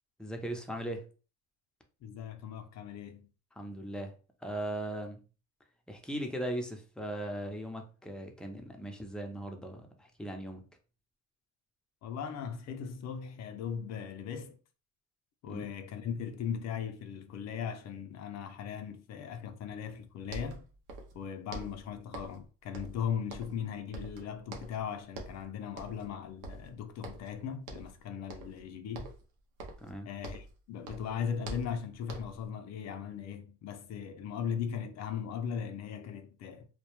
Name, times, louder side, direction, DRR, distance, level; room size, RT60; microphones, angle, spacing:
voice 1, 0.2-1.1 3.6-4.1 4.4-5.2 5.9-10.6 15.5-15.7 29.8-30.1, right 1 dB, 5° left, 0.5 m, -38 dB
voice 2, 2.0-3.3 12.0-14.6 15.4-20.7 21.1-29.1 30.0-36.7, left 7 dB, 60° left, 0.5 m, -38 dB
sound 1, 20.0-20.1 20.3-21.2 21.5-22.5 22.7-23.7 23.9-24.8 25.1-25.4 25.8-26.1 26.4-27.3 27.7-28.0 28.3-28.6 28.9-30.6 30.8-32.5, right 2 dB, 85° right, 0.6 m, -45 dB
2.2 x 2.1 x 2.9 m
cardioid pair, 95°, 30 cm